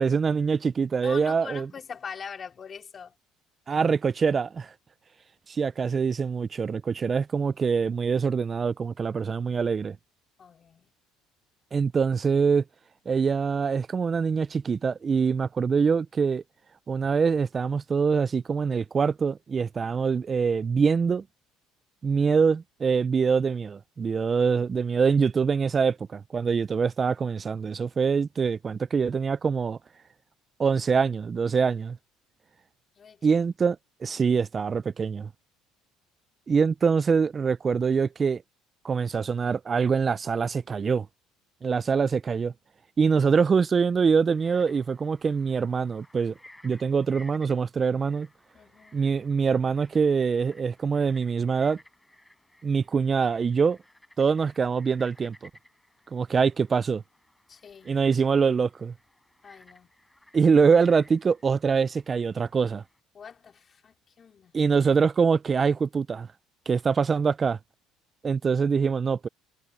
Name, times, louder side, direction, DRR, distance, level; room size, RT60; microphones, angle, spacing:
voice 1, 0.0-1.7 3.7-4.7 5.5-10.0 11.7-12.6 13.1-16.4 16.9-21.2 22.0-29.8 30.6-32.0 33.2-35.3 36.5-38.4 38.8-41.1 41.6-42.5 43.0-46.3 46.6-48.3 48.9-51.8 52.6-53.8 54.2-55.4 56.1-57.0 57.9-58.9 60.3-62.8 64.5-66.3 66.7-67.6 68.2-69.3, right 5 dB, 30° right, 0.4 m, -24 dB
voice 2, 1.0-3.1 3.7-3.8 4.2-4.3 10.4-10.9 33.0-33.4 48.5-49.0 57.5-57.9 59.4-59.9 63.1-64.5, left 6 dB, 35° left, 3.0 m, -43 dB
Frog, 44.2-63.0, left 1 dB, 5° left, 6.2 m, -57 dB
cardioid pair, 105°, 0 cm